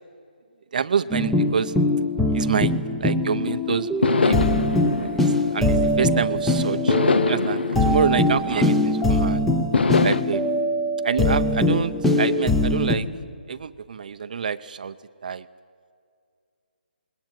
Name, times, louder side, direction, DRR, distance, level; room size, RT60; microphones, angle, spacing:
voice 1, 0.7-1.7 2.3-2.7 3.0-3.9 4.2-4.4 5.1-7.0 7.3-9.5 10.0-10.4 11.0-13.1 13.5-14.9 15.2-15.5, right 6 dB, 50° right, 11 dB, 0.6 m, -26 dB
sound 1, 1.1-13.0, left 1 dB, 5° left, 0.7 m, -22 dB
sound 2, 4.0-6.3 6.9-9.1 9.7-10.2, left 4 dB, 75° left, 1.0 m, -24 dB
21.0 x 19.0 x 9.0 m, 2.3 s
hypercardioid pair, 165°, 6 cm